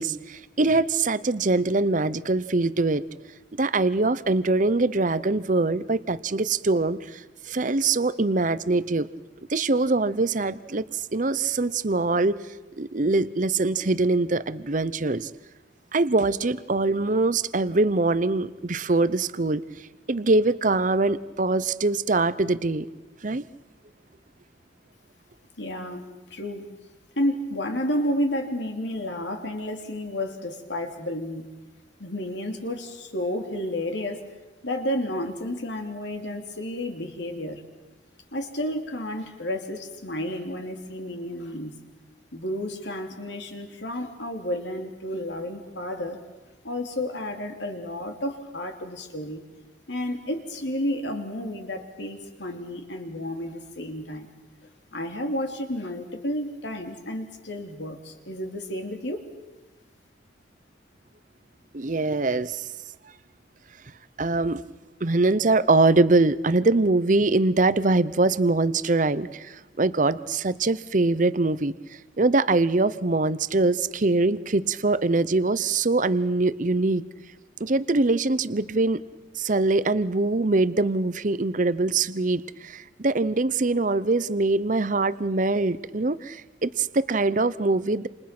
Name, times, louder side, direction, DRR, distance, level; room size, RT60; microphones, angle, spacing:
voice 1, 0.0-3.0 3.6-9.1 9.5-12.4 12.8-15.3 15.9-19.6 20.1-22.9 23.2-23.4 61.7-62.6 64.2-64.6 65.0-71.7 72.2-77.0 77.6-79.0 79.4-88.1, right 3 dB, 40° right, 16 dB, 0.8 m, -23 dB
voice 2, 25.6-26.7 27.2-31.5 32.0-34.2 34.6-37.6 38.3-41.7 42.3-46.2 46.6-49.4 49.9-54.3 54.9-59.2, left 1 dB, 70° left, 4 dB, 3.2 m, -31 dB
29.0 x 28.0 x 6.1 m, 1.1 s
head